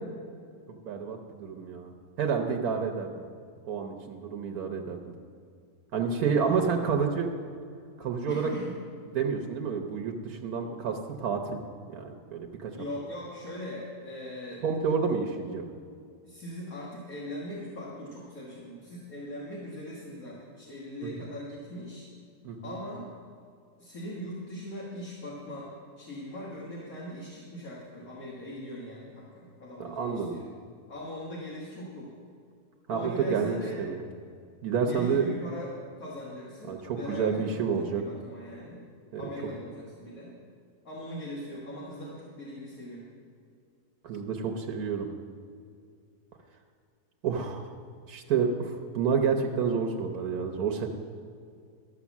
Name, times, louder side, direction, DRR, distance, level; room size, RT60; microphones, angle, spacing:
voice 1, 0.8-1.9 2.2-3.2 3.7-5.1 5.9-7.3 8.0-8.5 9.1-11.6 11.9-12.7 14.6-15.6 21.0-21.1 22.4-22.8 29.8-30.4 32.9-34.0 34.6-35.2 36.7-38.0 39.1-39.2 44.0-45.1 47.2-47.7 48.1-50.9, right 6 dB, 70° right, 3 dB, 1.3 m, -29 dB
voice 2, 6.2-6.9 8.3-8.8 12.8-14.6 16.2-22.1 22.6-23.1 23.8-25.7 26.0-30.5 30.9-32.1 32.9-33.8 34.8-38.9 39.2-40.4 40.8-43.0, left 1 dB, 60° left, -6 dB, 2.0 m, -40 dB
12.5 x 6.6 x 7.2 m, 2.3 s
omnidirectional pair, 1.7 m